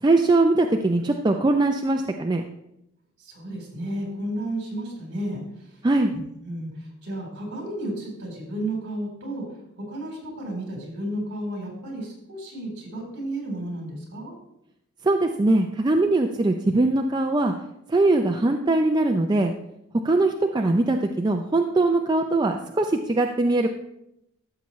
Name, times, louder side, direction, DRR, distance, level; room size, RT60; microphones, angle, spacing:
voice 1, 0.0-2.4 5.8-6.1 15.0-17.5 17.9-19.5 20.0-23.7, right 2 dB, 20° right, 4 dB, 0.4 m, -21 dB
voice 2, 3.2-5.7 6.1-6.2 6.4-9.4 9.7-14.3, right 1 dB, 55° right, -1 dB, 3.8 m, -32 dB
13.5 x 7.1 x 3.1 m, 0.82 s
head